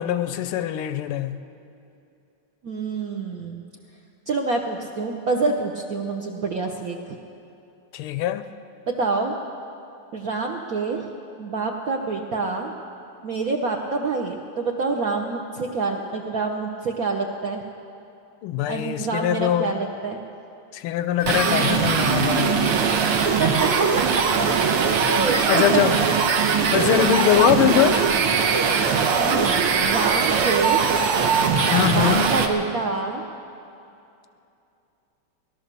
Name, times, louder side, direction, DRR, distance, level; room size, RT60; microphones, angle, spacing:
voice 1, 0.0-1.4 7.9-8.5 18.4-19.7 20.7-22.7 25.5-26.0 26.7-28.2 31.6-32.3, left 11 dB, 90° left, 11 dB, 1.6 m, -22 dB
voice 2, 2.6-3.6 4.3-7.0 8.9-9.4 10.1-11.0 11.4-12.7 13.2-17.6 18.7-20.2 23.2-24.3 25.1-25.8 29.2-30.9 31.8-33.2, right 4 dB, 55° right, 1 dB, 1.0 m, -27 dB
sound 1, 21.2-32.5, right 6 dB, 90° right, 1.9 m, -21 dB
17.5 x 12.0 x 6.7 m, 2.7 s
omnidirectional pair, 2.3 m